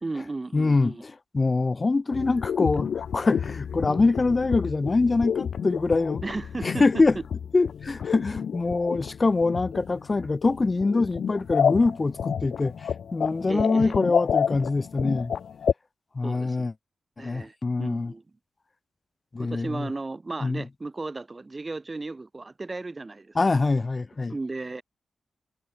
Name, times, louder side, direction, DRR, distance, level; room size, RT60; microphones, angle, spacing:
voice 1, 0.0-1.0 6.2-7.0 13.4-14.0 16.2-16.7 17.2-18.2 19.4-23.6 24.3-24.8, right 3 dB, 30° right, 3.1 m, -35 dB
voice 2, 0.5-6.2 6.6-7.2 7.5-15.3 16.1-16.7 17.2-18.1 19.3-19.9 20.4-20.6 23.4-24.3, left 3 dB, 35° left, 0.4 m, -24 dB
sound 1, 2.1-15.7, left 7 dB, 80° left, 1.0 m, -30 dB
cardioid pair, 80°, 0 cm